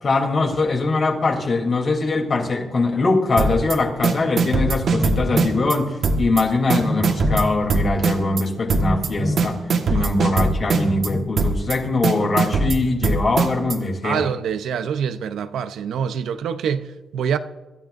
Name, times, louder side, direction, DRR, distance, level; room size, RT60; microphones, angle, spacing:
voice 1, 0.0-9.6 9.9-14.3, left 3 dB, 50° left, 3.2 m, -22 dB
sound 1, 3.4-3.7 4.0-5.8 6.0-6.4 6.7-8.4 8.7-9.1 9.4-11.1 11.4-11.8 12.0-13.8, right 4 dB, 65° right, 1.5 m, -20 dB
Telephone, 4.9-5.6 6.8-7.5 8.8-9.5 10.7-11.2, left 1 dB, 5° left, 1.2 m, -26 dB
voice 2, 14.0-17.4, right 7 dB, 85° right, 0.7 m, -25 dB
25.0 x 12.0 x 2.6 m
cardioid pair, 80°, 0 cm